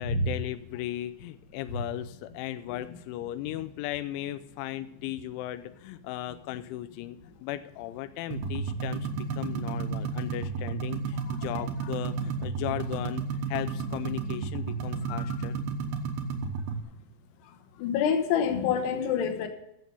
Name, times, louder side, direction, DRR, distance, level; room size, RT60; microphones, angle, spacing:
voice 1, 0.0-13.2 13.5-15.6, left 14 dB, 90° left, 11 dB, 3.0 m, -36 dB
sound 1, 8.3-16.8, right 5 dB, 70° right, 2.1 m, -32 dB
voice 2, 15.0-15.4 17.8-19.5, left 6 dB, 70° left, 6 dB, 3.1 m, -27 dB
15.5 x 7.2 x 5.4 m, 0.80 s
omnidirectional pair, 5.4 m